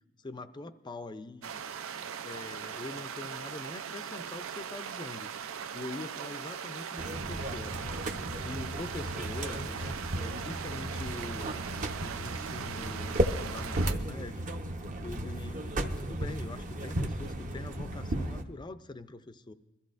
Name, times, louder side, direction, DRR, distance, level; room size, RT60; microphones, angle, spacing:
voice 1, 0.2-1.6 2.0-8.0 8.4-11.6 12.0-14.5 15.0-19.5, left 2 dB, 20° left, 12 dB, 0.4 m, -44 dB
sound 1, 1.4-13.9, right 7 dB, 85° right, 0.5 m, -40 dB
sound 2, 7.0-18.4, right 1 dB, 40° right, 0.7 m, -34 dB
22.0 x 13.5 x 2.5 m, 1.1 s
head